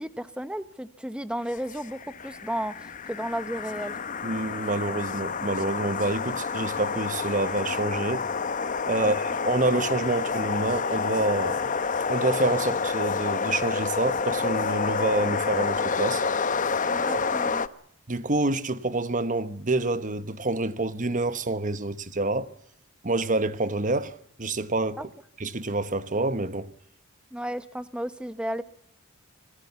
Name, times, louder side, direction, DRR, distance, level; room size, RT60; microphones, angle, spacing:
voice 1, 0.0-2.0 2.2-3.9 8.8-9.1 16.8-17.7 25.0-25.1 27.3-28.6, equal, 5° right, 1.1 m, -33 dB
sound 1, 1.5-17.7, left 5 dB, 40° left, 0.8 m, -29 dB
voice 2, 4.2-8.2 8.8-11.7 12.1-16.2 18.1-22.5 23.0-24.1 24.4-25.0 25.4-26.7, right 2 dB, 40° right, 1.2 m, -27 dB
27.0 x 18.5 x 7.1 m
head